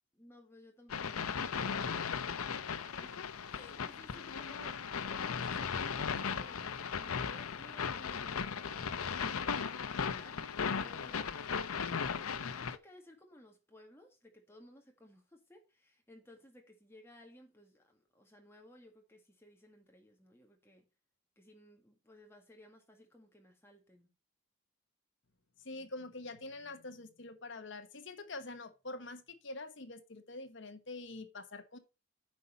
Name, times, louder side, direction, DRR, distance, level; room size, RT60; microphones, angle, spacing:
voice 1, 0.1-20.9 21.4-24.1, left 1 dB, 10° left, 1.8 m, -58 dB
sound 1, 0.9-12.8, left 6 dB, 85° left, 0.7 m, -37 dB
voice 2, 25.6-31.8, left 2 dB, 55° left, 1.2 m, -45 dB
9.6 x 5.6 x 4.0 m
head